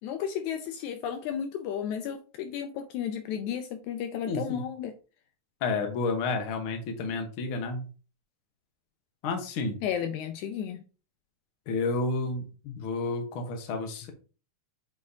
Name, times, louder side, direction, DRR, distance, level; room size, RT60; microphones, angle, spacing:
voice 1, 0.0-4.9 9.8-10.8 12.7-12.8, left 9 dB, 80° left, 1.9 m, -33 dB
voice 2, 4.3-4.6 5.6-7.9 9.2-9.8 11.7-12.4 12.8-14.1, left 3 dB, 55° left, 1.6 m, -30 dB
8.2 x 4.5 x 2.7 m
omnidirectional pair, 3.6 m